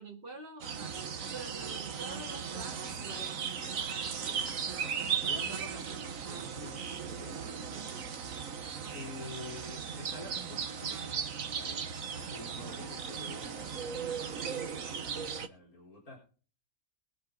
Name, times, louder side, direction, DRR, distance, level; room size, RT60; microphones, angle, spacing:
voice 1, 0.0-3.5 7.6-8.1 12.6-12.9, right 3 dB, 40° right, -2 dB, 2.4 m, -47 dB
sound 1, 0.6-15.5, right 6 dB, 70° right, 1.6 m, -37 dB
voice 2, 4.0-4.5 4.8-7.4 8.9-11.2 11.5-16.2, left 2 dB, 85° left, -1 dB, 4.8 m, -49 dB
23.0 x 7.9 x 3.9 m, 0.38 s
omnidirectional pair, 1.5 m